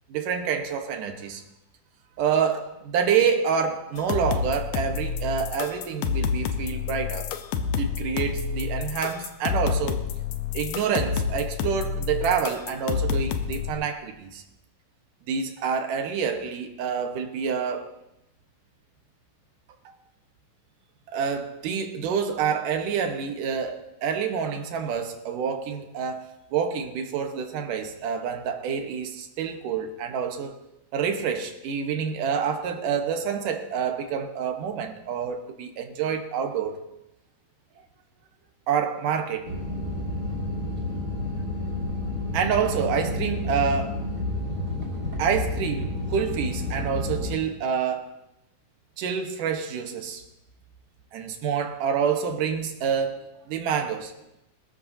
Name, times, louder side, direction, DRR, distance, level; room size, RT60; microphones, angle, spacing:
voice 1, 0.1-1.4 2.2-7.3 7.8-10.1 10.5-14.4 15.3-17.9 21.1-26.3 26.5-30.6 30.9-36.9 38.7-39.5 42.3-44.0 45.2-48.1 49.0-50.2 51.1-54.1, right 7 dB, 70° right, 2.8 m, -27 dB
sound 1, 4.0-13.7, left 6 dB, 80° left, 2.5 m, -29 dB
sound 2, 39.4-47.3, left 2 dB, 30° right, 3.1 m, -30 dB
24.0 x 13.5 x 2.8 m
omnidirectional pair, 3.9 m